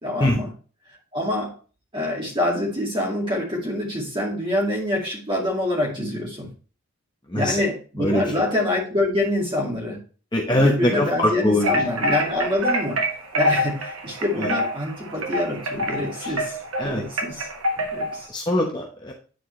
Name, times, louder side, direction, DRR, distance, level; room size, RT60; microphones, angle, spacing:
voice 1, 0.0-0.5 1.1-1.5 1.9-6.5 7.3-10.0 10.6-13.0 13.3-16.6 16.8-17.5 17.8-18.3, left 1 dB, 25° right, -2 dB, 2.2 m, -25 dB
voice 2, 10.3-11.8 14.4-14.5 16.2-16.3 16.8-17.0 18.3-19.1, left 1 dB, 20° left, 0 dB, 0.9 m, -22 dB
sound 1, 11.6-18.2, equal, 90° right, 1.3 m, -26 dB
9.1 x 4.4 x 3.1 m, 0.37 s
head